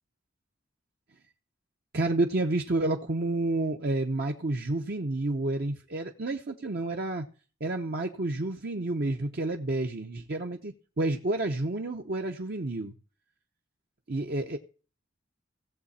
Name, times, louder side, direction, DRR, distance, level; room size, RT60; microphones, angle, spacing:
voice 1, 1.9-7.3 7.6-12.9 14.1-14.6, right 2 dB, 55° right, 0.9 m, -30 dB
17.0 x 7.4 x 4.2 m
head